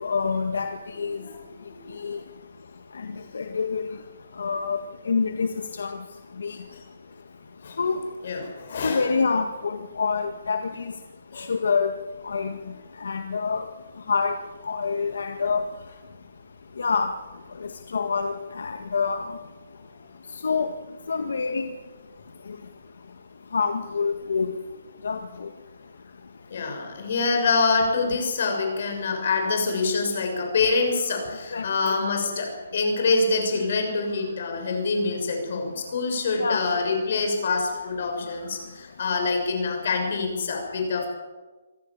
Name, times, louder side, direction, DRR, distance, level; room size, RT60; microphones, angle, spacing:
voice 1, 0.0-1.2 2.0-2.2 3.0-3.1 3.3-3.8 4.4-6.0 6.4-6.6 7.8-8.0 8.8-10.9 11.4-11.9 12.2-12.6 13.0-13.7 14.1-14.3 14.6-15.7 16.8-17.2 17.6-19.4 20.4-20.7 21.1-21.7 23.5-24.6 25.0-25.5 31.5-31.7 36.4-36.7, left 5 dB, 80° left, 7 dB, 1.7 m, -26 dB
voice 2, 1.7-2.0 6.7-6.8 7.6-7.8 8.2-9.1 11.3-11.5 26.5-41.1, left 4 dB, 50° left, 4 dB, 6.6 m, -26 dB
26.0 x 17.0 x 7.4 m, 1.2 s
hypercardioid pair, 170°, 0 cm